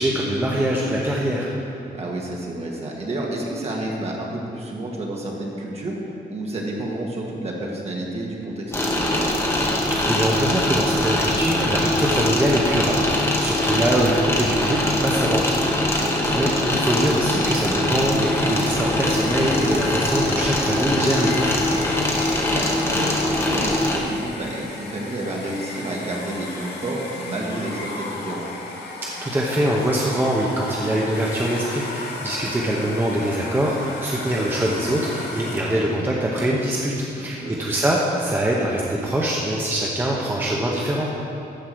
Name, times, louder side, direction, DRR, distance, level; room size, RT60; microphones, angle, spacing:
voice 1, 0.0-1.5 10.1-15.6 15.8-21.6 29.0-41.1, right 1 dB, 10° right, -3 dB, 0.8 m, -23 dB
voice 2, 1.9-6.0 6.3-9.3 16.0-16.5 22.5-28.4 35.6-35.8 37.2-37.7, right 1 dB, 35° right, -2 dB, 1.6 m, -30 dB
sound 1, 8.7-24.0, left 1 dB, 15° left, 1.0 m, -22 dB
Domestic sounds home sounds, 18.2-35.9, left 3 dB, 70° left, 1.6 m, -35 dB
13.0 x 4.7 x 7.7 m, 2.8 s
wide cardioid pair, 175°, 18 cm